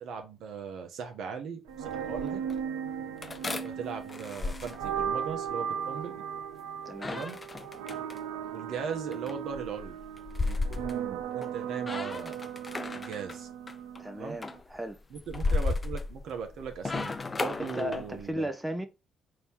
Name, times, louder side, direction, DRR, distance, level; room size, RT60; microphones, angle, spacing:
voice 1, 0.0-2.4 3.6-6.1 7.1-7.4 8.5-10.0 10.4-12.4 12.9-13.5 14.2-14.4 15.1-18.5, right 6 dB, 70° right, 0.9 m, -39 dB
sound 1, 1.7-2.6 3.2-5.5 6.9-8.2 8.9-11.6 11.8-13.4 13.7-14.0 14.4-18.3, left 3 dB, 30° left, 0.5 m, -35 dB
sound 2, 1.7-14.6, right 8 dB, 85° right, 0.5 m, -37 dB
voice 2, 6.8-7.2 14.0-15.0 17.6-18.9, equal, 10° right, 0.7 m, -35 dB
4.2 x 2.9 x 3.4 m
hypercardioid pair, 55°, 0 cm